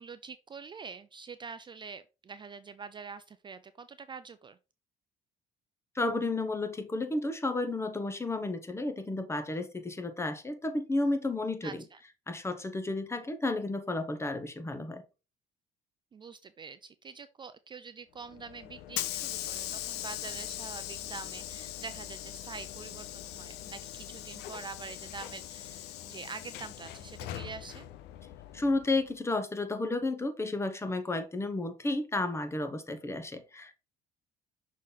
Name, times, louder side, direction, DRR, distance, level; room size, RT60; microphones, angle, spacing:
voice 1, 0.0-4.6 11.6-12.0 16.1-27.9, right 5 dB, 30° right, 0.4 m, -45 dB
voice 2, 5.9-11.8 12.3-15.0 28.5-33.7, left 2 dB, 15° left, 1.0 m, -32 dB
Hiss / Sliding door, 18.2-29.1, left 13 dB, 85° left, 0.7 m, -41 dB
6.1 x 4.1 x 4.0 m
cardioid pair, 110°, 17 cm